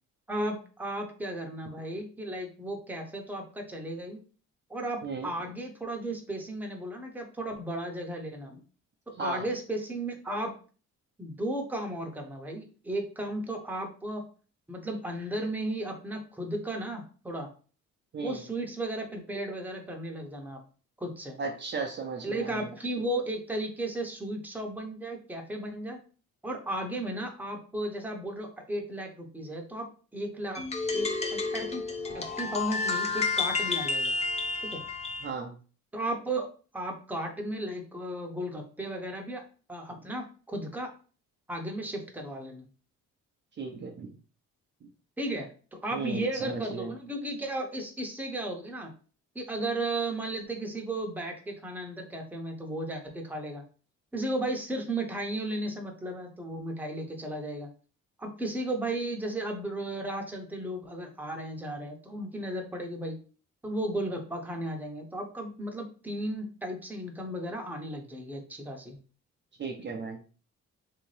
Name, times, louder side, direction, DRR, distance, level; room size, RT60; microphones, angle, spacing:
voice 1, 0.3-4.2 4.7-8.6 9.1-10.5 11.2-14.2 14.7-17.5 18.2-20.6 21.0-21.4 22.2-26.0 26.4-30.6 30.9-31.8 32.1-34.1 34.7-34.8 35.9-36.5 36.7-39.4 39.7-40.9 41.5-42.7 45.2-48.9 49.3-53.6 54.1-57.7 58.2-63.2 63.6-69.0, right 1 dB, 5° right, 1 dB, 0.8 m, -35 dB
voice 2, 21.4-22.7 35.2-35.6 43.6-44.1 45.9-46.9 69.6-70.2, right 4 dB, 35° right, 2 dB, 0.6 m, -35 dB
sound 1, 30.5-35.3, left 3 dB, 20° left, 0.6 m, -30 dB
3.4 x 2.7 x 3.2 m, 0.38 s
cardioid pair, 90°, 30 cm